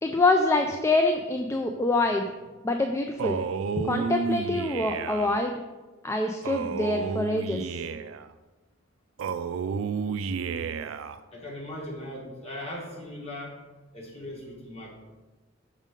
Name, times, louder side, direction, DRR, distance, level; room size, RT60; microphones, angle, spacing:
voice 1, 0.0-2.3 2.6-3.4 3.8-5.6 6.0-7.8, left 2 dB, 15° left, 4 dB, 0.3 m, -25 dB
Male speech man speaking, 3.2-5.4 6.4-8.3 9.2-11.2, right 5 dB, 70° right, 0.3 m, -31 dB
voice 2, 11.3-13.6 13.9-15.1, left 1 dB, 30° left, -3 dB, 1.6 m, -39 dB
6.3 x 3.8 x 5.1 m, 1.2 s
head